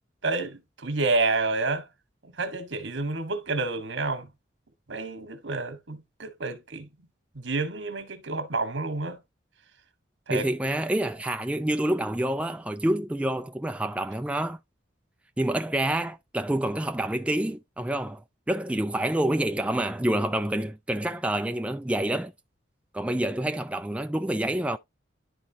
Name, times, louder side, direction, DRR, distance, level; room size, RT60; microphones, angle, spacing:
voice 1, 0.2-1.8 2.2-4.3 4.9-6.9 7.3-9.2 10.3-10.5, right 3 dB, 90° right, 1.5 m, -29 dB
voice 2, 10.3-14.6 15.4-22.3 22.9-24.8, right 1 dB, 5° right, 0.3 m, -27 dB
11.5 x 4.2 x 2.8 m
head